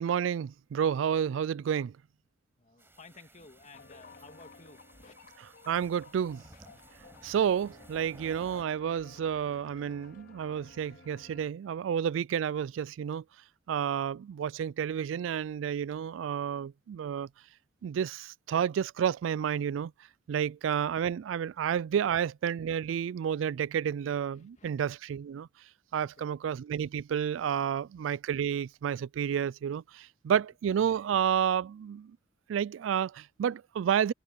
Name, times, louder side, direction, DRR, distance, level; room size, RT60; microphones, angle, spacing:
voice 1, 0.0-1.9 5.7-6.4 7.2-13.2 13.7-17.3 17.8-19.9 20.3-25.5 25.9-32.1 32.5-34.1, right 8 dB, 80° right, 0.3 m, -30 dB
voice 2, 2.6-5.2 20.4-20.5 22.0-22.1 24.3-24.7 26.0-26.3 27.7-27.8, left 3 dB, 40° left, 2.3 m, -55 dB
sound 1, 2.8-8.6, right 1 dB, 10° right, 6.1 m, -57 dB
sound 2, 3.7-11.5, left 3 dB, 55° left, 4.2 m, -55 dB
head